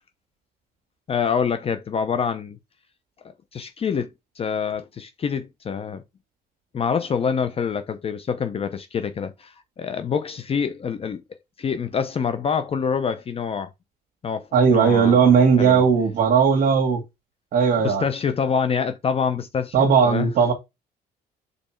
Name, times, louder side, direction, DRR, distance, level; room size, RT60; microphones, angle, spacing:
voice 1, 1.1-2.6 3.5-4.1 4.4-6.0 6.7-11.2 11.6-13.7 14.2-15.8 17.8-20.3, left 6 dB, 35° left, 0.6 m, -26 dB
voice 2, 14.5-17.0 17.5-18.0 19.7-20.5, right 6 dB, 55° right, 1.6 m, -17 dB
5.5 x 4.0 x 4.5 m
cardioid pair, 110°, 17 cm